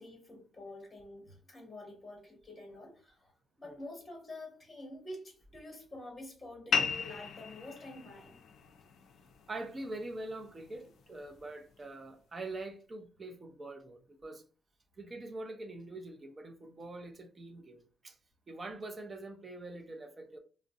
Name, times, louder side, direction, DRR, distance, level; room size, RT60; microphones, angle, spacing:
voice 1, 0.0-3.3 3.6-8.4, left 1 dB, 15° left, 1.1 m, -48 dB
sound 1, 6.7-11.8, left 6 dB, 65° left, 0.4 m, -38 dB
voice 2, 9.5-14.4 15.0-18.2 18.5-20.4, right 2 dB, 30° right, 0.6 m, -44 dB
2.5 x 2.1 x 3.5 m
cardioid pair, 90°, 0 cm